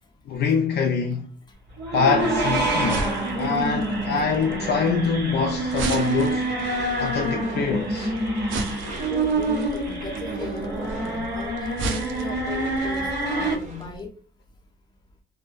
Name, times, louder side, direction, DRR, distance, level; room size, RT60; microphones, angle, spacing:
voice 1, 0.3-1.3 1.9-3.1 3.4-6.5 7.0-8.1, left 5 dB, 55° left, 0.4 m, -24 dB
sound 1, 1.8-13.5, right 2 dB, 60° right, 1.3 m, -27 dB
sound 2, 2.3-14.1, right 3 dB, 80° right, 0.5 m, -37 dB
Door / Screech, 5.7-14.0, equal, 35° right, 0.9 m, -43 dB
voice 2, 9.1-14.2, left 3 dB, 20° left, 0.7 m, -36 dB
2.5 x 2.1 x 2.4 m
cardioid pair, 90°, 20 cm